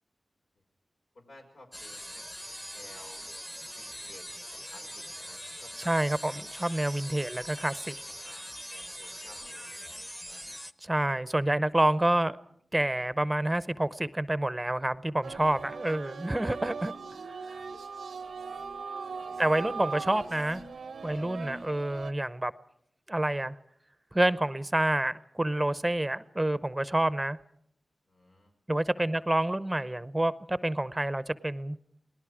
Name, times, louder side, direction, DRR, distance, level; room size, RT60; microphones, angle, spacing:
voice 1, 1.2-2.2 2.7-3.2 3.8-4.2 4.7-5.9 7.1-7.2 8.2-8.5 8.7-10.4 19.1-19.4 28.1-28.5 29.0-29.1, left 2 dB, 85° left, 0 dB, 5.6 m, -54 dB
sound 1, 1.7-10.7, equal, 10° left, 1.0 m, -42 dB
voice 2, 5.7-7.9 10.8-12.4 12.7-16.9 19.4-20.6 21.0-22.5 23.1-23.6 24.1-27.4 28.7-31.8, right 1 dB, 20° right, 15 dB, 0.7 m, -28 dB
sound 2, 15.2-22.1, right 5 dB, 90° right, 0.8 m, -39 dB
29.0 x 19.0 x 4.9 m, 0.70 s
cardioid pair, 55°, 0 cm